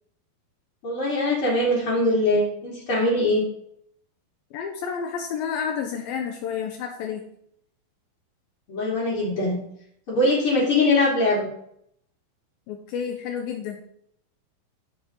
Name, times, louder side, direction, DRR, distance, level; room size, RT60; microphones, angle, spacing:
voice 1, 0.8-3.4 8.7-9.6 10.1-11.5, left 2 dB, 35° left, -9 dB, 3.2 m, -22 dB
voice 2, 4.5-7.3 12.7-13.8, left 7 dB, 80° left, 4 dB, 2.5 m, -30 dB
14.5 x 5.0 x 3.9 m, 0.71 s
omnidirectional pair, 4.3 m